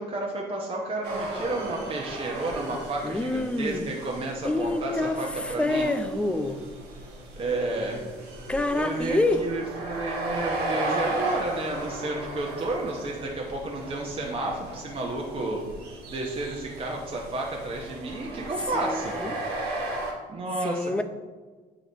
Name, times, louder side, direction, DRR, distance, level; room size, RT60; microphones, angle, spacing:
voice 1, 0.0-5.9 7.4-8.1 8.7-15.6 16.1-19.1 20.3-21.0, right 2 dB, 30° right, -2 dB, 1.0 m, -31 dB
sound 1, 1.0-20.1, right 2 dB, 85° right, 1.6 m, -35 dB
voice 2, 3.0-3.9 4.4-6.6 8.5-9.4 18.7-19.4 20.6-21.0, left 2 dB, 5° left, 9 dB, 0.4 m, -27 dB
7.7 x 3.9 x 3.9 m, 1.4 s
cardioid pair, 110°, 17 cm